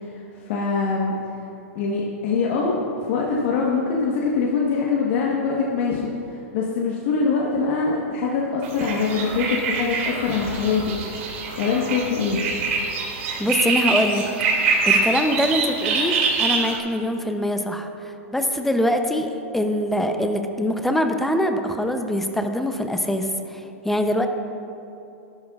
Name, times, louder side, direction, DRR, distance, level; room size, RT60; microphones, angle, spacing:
voice 1, 0.0-1.1 1.7-2.8 3.1-6.0 6.3-10.9 11.6-12.4, left 5 dB, 55° left, -3 dB, 1.2 m, -23 dB
sound 1, 8.6-16.8, right 4 dB, 60° right, 2.3 m, -24 dB
voice 2, 13.4-14.2 14.8-24.3, left 1 dB, 5° left, 6 dB, 0.6 m, -23 dB
13.0 x 11.5 x 2.4 m, 2.9 s
hypercardioid pair, 140°, 8 cm